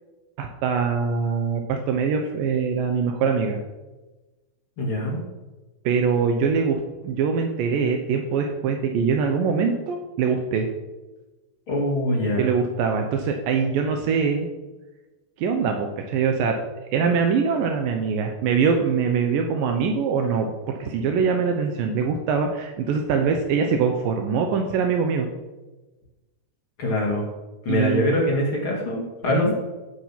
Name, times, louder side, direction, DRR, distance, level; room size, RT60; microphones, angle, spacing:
voice 1, 0.4-3.6 5.9-10.7 12.4-14.5 15.4-16.6 16.9-20.5 20.8-25.3 27.7-28.1 29.3-29.5, right 5 dB, 75° right, 4 dB, 2.1 m, -23 dB
voice 2, 4.8-5.2 11.7-12.5 26.8-27.3 27.6-29.6, left 1 dB, 40° left, -3 dB, 2.3 m, -23 dB
15.0 x 6.1 x 5.8 m, 1.1 s
omnidirectional pair, 5.0 m